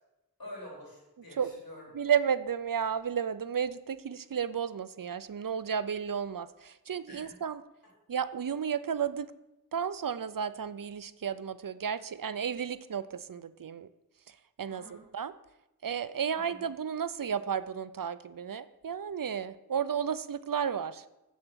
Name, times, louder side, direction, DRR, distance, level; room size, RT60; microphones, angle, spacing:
voice 1, 0.4-1.9 7.1-7.4 14.7-15.0 16.3-16.6, left 1 dB, 70° left, -3 dB, 3.8 m, -47 dB
voice 2, 1.9-7.6 8.1-9.3 9.7-13.9 14.6-15.3 15.8-21.0, right 7 dB, 65° right, 15 dB, 0.5 m, -33 dB
7.9 x 7.2 x 6.2 m, 0.95 s
wide cardioid pair, 50°, 36 cm